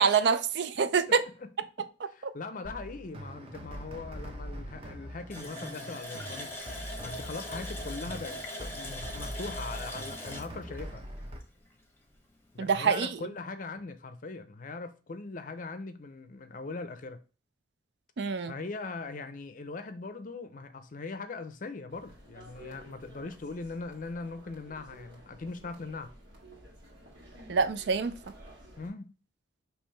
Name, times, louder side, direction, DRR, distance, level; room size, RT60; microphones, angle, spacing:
voice 1, 0.0-1.2 12.6-13.2 18.2-18.5 27.5-28.2, right 5 dB, 65° right, 0.4 m, -25 dB
voice 2, 1.1-1.5 2.1-6.5 7.0-11.1 12.5-17.2 18.5-26.1 28.8-29.1, left 3 dB, 45° left, 0.5 m, -40 dB
sound 1, 2.6-11.4, equal, 30° right, 0.8 m, -42 dB
Water tap faucet, 5.3-11.8 12.1-12.2 12.7-12.8, left 1 dB, 10° left, 0.9 m, -41 dB
sound 2, 21.9-28.9, equal, 80° right, 1.8 m, -52 dB
5.4 x 3.0 x 3.3 m
head